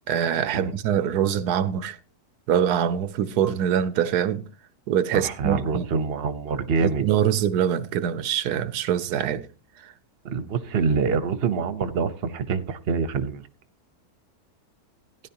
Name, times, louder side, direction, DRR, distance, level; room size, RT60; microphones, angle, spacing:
voice 1, 0.1-2.0 2.5-4.5 4.9-5.9 6.8-9.5 9.8-9.9, right 9 dB, 85° right, 1.3 m, -24 dB
voice 2, 5.1-7.0 10.2-13.4, right 5 dB, 45° right, 1.1 m, -25 dB
16.5 x 10.5 x 2.9 m
omnidirectional pair, 1.6 m